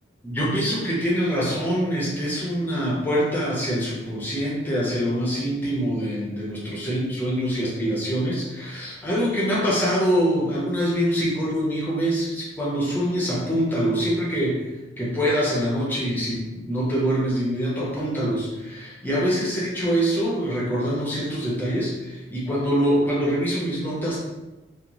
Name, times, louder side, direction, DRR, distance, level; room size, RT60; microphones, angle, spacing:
voice 1, 0.2-14.7 15.0-24.2, equal, 10° left, -6 dB, 0.6 m, -24 dB
2.5 x 2.0 x 2.9 m, 1.1 s
head